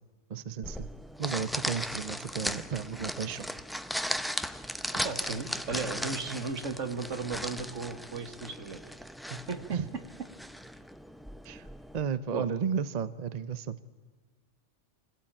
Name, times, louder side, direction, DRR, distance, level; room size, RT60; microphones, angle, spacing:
voice 1, 0.3-0.9 1.2-3.5 9.7-9.9 11.4-11.7 11.9-13.8, right 6 dB, 40° right, 15 dB, 0.7 m, -33 dB
sound 1, 0.6-12.0, equal, ahead, 0.4 m, -37 dB
voice 2, 5.0-8.8 9.3-9.6 12.3-12.5, right 4 dB, 80° right, 8 dB, 1.9 m, -35 dB
24.5 x 16.5 x 8.8 m, 1.4 s
omnidirectional pair, 1.3 m